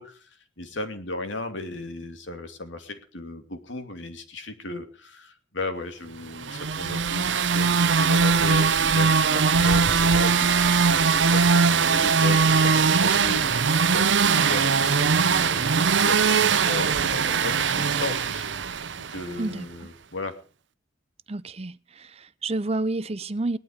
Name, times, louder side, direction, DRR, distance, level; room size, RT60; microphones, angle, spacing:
voice 1, 0.0-20.3, left 2 dB, 90° left, 2.7 m, -36 dB
sound 1, 6.4-19.3, right 5 dB, 75° right, 0.8 m, -21 dB
voice 2, 21.3-23.6, right 2 dB, 35° right, 0.7 m, -29 dB
18.5 x 12.0 x 5.1 m
head